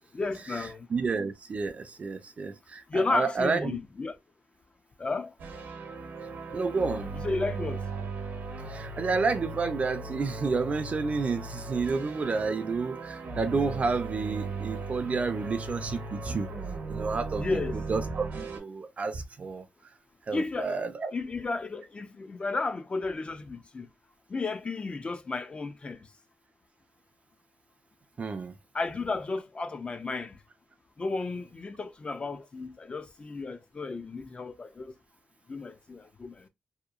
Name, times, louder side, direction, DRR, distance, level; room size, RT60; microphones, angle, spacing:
voice 1, 0.1-0.9 2.9-4.2 5.0-5.3 7.1-7.8 17.3-17.8 20.3-20.8 21.1-23.9 24.3-26.1 28.7-30.4 31.0-34.9 35.5-36.5, left 3 dB, 35° left, 0.4 m, -33 dB
voice 2, 0.9-3.8 6.5-7.1 8.7-16.5 16.9-17.6 17.9-19.6 20.3-21.1 28.2-28.5, right 4 dB, 45° right, 0.4 m, -30 dB
sound 1, 5.4-18.6, right 3 dB, 75° right, 0.8 m, -37 dB
2.8 x 2.2 x 2.4 m
cardioid pair, 85°, 3 cm